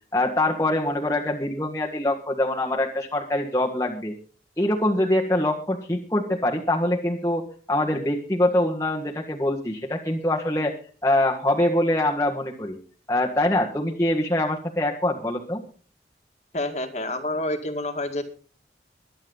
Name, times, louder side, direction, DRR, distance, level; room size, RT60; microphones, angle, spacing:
voice 1, 0.1-4.1 4.6-10.7 11.0-12.8 13.1-15.6, left 1 dB, 15° left, -1 dB, 1.7 m, -24 dB
voice 2, 16.5-18.2, left 1 dB, 40° left, 6 dB, 2.0 m, -28 dB
22.5 x 9.9 x 4.0 m, 0.38 s
head